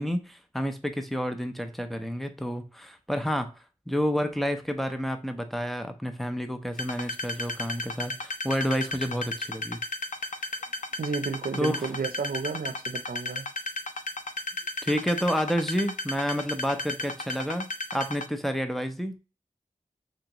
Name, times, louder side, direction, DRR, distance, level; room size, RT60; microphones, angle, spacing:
voice 1, 0.0-3.5 3.9-9.8 11.6-11.9 14.8-19.2, equal, ahead, 0.5 m, -29 dB
sound 1, 6.8-18.3, left 2 dB, 60° left, 0.5 m, -34 dB
voice 2, 11.0-13.5, right 5 dB, 85° right, 0.5 m, -32 dB
3.5 x 3.0 x 2.9 m
wide cardioid pair, 65°, 15 cm